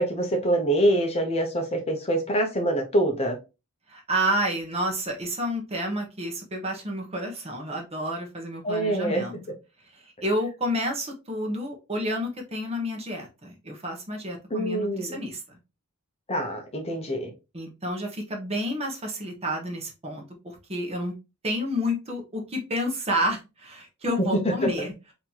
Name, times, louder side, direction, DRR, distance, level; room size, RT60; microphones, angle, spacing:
voice 1, 0.0-3.4 8.6-9.2 14.5-15.2 16.3-17.3 24.1-24.9, right 1 dB, 30° left, 3 dB, 0.7 m, -25 dB
voice 2, 3.9-9.3 9.9-15.6 17.5-21.1 21.4-24.9, equal, 30° right, 1 dB, 1.0 m, -30 dB
4.0 x 2.9 x 2.8 m, 0.27 s
head